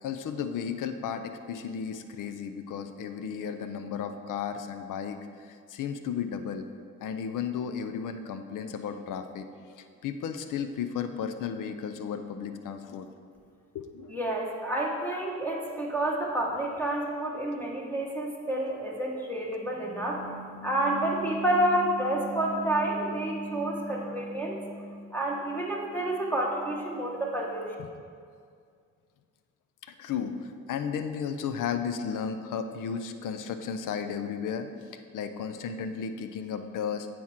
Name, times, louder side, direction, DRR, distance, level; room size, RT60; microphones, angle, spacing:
voice 1, 0.0-6.7 7.0-9.5 9.8-13.1 13.7-14.2 14.7-14.8 15.1-15.2 29.8-34.7 35.1-37.1, left 7 dB, 60° left, 9 dB, 0.6 m, -34 dB
voice 2, 14.1-27.7, right 1 dB, 5° left, -3 dB, 1.1 m, -29 dB
8.3 x 4.4 x 4.5 m, 2.2 s
supercardioid pair, 55°, 35 cm